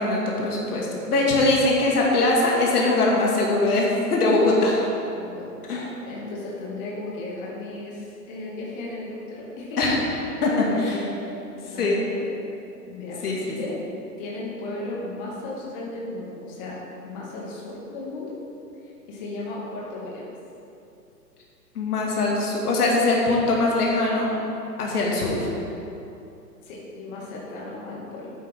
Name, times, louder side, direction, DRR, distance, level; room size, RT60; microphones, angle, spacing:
voice 1, 0.0-4.9 5.7-5.9 9.8-10.0 10.4-10.5 10.8-11.0 11.8-12.0 13.2-13.6 21.7-24.3 24.8-25.5, left 2 dB, 65° left, -3 dB, 2.4 m, -22 dB
voice 2, 5.2-9.8 10.1-12.3 12.9-13.8 14.2-18.4 19.1-20.3 26.6-28.3, left 2 dB, 30° left, -5 dB, 2.4 m, -35 dB
12.0 x 9.1 x 3.8 m, 2.8 s
hypercardioid pair, 140°, 49 cm